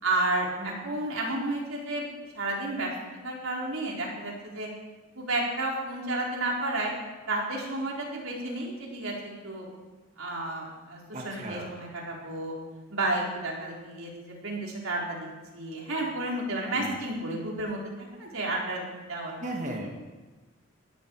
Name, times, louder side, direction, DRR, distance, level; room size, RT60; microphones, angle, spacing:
voice 1, 0.0-2.0 2.3-2.9 3.2-4.7 5.1-6.9 7.3-9.7 10.2-12.5 12.9-15.3 15.5-18.8 19.1-19.4, right 2 dB, 90° right, -2 dB, 4.5 m, -31 dB
voice 2, 11.1-11.7 16.7-17.0 19.4-19.9, right 1 dB, 35° right, 0 dB, 2.0 m, -36 dB
20.0 x 14.0 x 4.8 m, 1.3 s
head